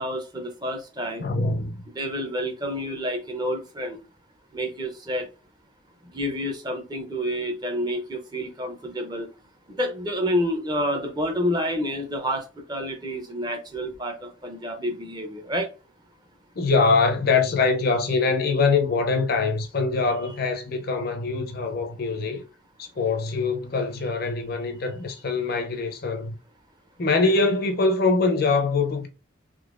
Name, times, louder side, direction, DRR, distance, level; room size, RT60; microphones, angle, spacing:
voice 1, 0.0-1.3 2.0-4.0 4.5-5.3 6.1-9.3 9.7-15.7, equal, 20° right, 0.5 m, -29 dB
voice 2, 1.2-1.8 16.6-22.4 22.8-26.4 27.0-29.1, left 4 dB, 45° left, 0.5 m, -23 dB
3.7 x 2.9 x 2.4 m
head